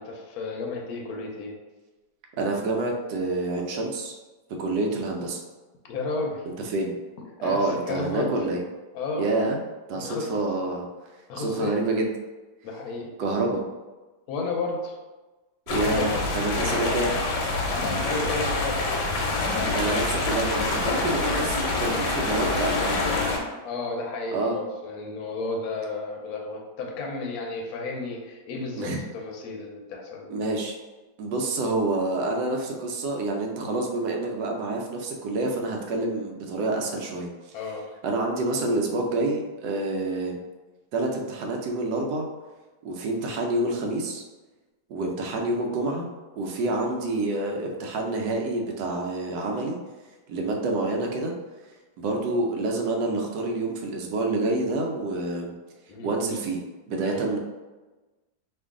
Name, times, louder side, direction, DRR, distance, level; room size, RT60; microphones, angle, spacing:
voice 1, 0.0-1.6 5.9-6.4 7.4-8.3 8.9-9.3 9.9-10.3 11.3-11.7 12.6-13.1 14.3-15.0 15.8-16.3 17.7-18.9 23.0-30.4 37.5-37.9 55.9-56.1 57.0-57.2, left 3 dB, 70° left, 0 dB, 1.0 m, -32 dB
voice 2, 2.4-4.1 4.6-5.4 6.6-7.0 7.4-8.6 9.2-9.6 9.9-10.8 11.4-12.1 13.2-13.6 15.7-17.2 19.7-22.9 24.3-24.6 28.8-29.0 30.3-30.8 31.2-37.3 38.0-40.4 40.9-42.3 42.8-44.2 44.9-46.1 46.4-49.8 50.3-51.3 52.0-55.6 56.0-56.6 56.9-57.4, right 2 dB, 80° right, 1 dB, 1.2 m, -27 dB
sound 1, 15.7-23.4, left 2 dB, 90° left, 1.3 m, -26 dB
3.0 x 2.5 x 3.5 m, 1.2 s
omnidirectional pair, 1.8 m